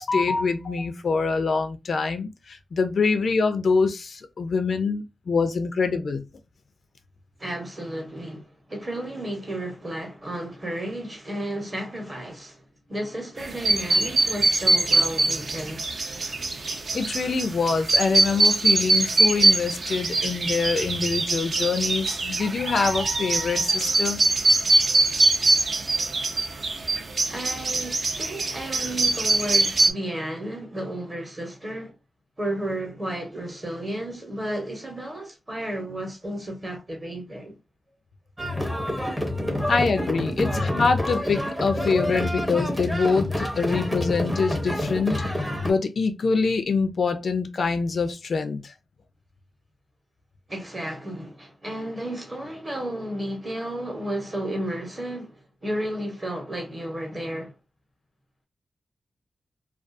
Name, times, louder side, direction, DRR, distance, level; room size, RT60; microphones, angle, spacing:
voice 1, 0.0-6.2 16.9-24.2 39.7-45.2 45.6-48.7, left 4 dB, 55° left, 0.3 m, -25 dB
voice 2, 7.4-12.6 12.9-15.8 27.3-31.9 32.4-37.5 50.5-57.5, right 1 dB, 25° right, 0.9 m, -33 dB
sound 1, 13.4-29.9, right 2 dB, 45° right, 0.4 m, -23 dB
sound 2, 38.4-45.7, left 1 dB, 5° right, 0.6 m, -27 dB
2.3 x 2.3 x 2.5 m
wide cardioid pair, 145°, 0 cm